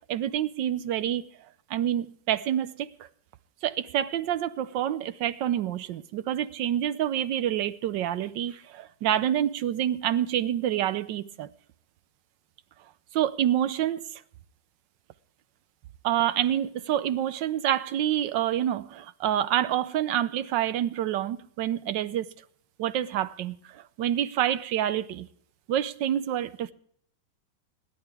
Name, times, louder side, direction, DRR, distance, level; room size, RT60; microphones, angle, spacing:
voice 1, 0.1-1.3 1.7-2.9 3.6-11.5 13.1-14.0 16.0-22.3 22.8-25.3 25.7-26.7, right 11 dB, 75° right, 1.4 m, -27 dB
27.0 x 11.0 x 3.4 m
omnidirectional pair, 2.1 m